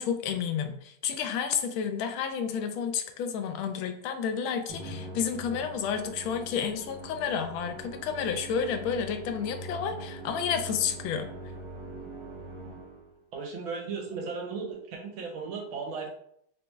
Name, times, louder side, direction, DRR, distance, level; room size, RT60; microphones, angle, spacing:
voice 1, 0.0-11.3, left 7 dB, 85° left, 8 dB, 1.4 m, -31 dB
Musical instrument, 4.7-13.2, right 1 dB, 25° right, 0.6 m, -42 dB
voice 2, 13.3-16.1, right 5 dB, 90° right, 1 dB, 1.8 m, -36 dB
3.7 x 3.0 x 3.4 m, 0.70 s
omnidirectional pair, 2.1 m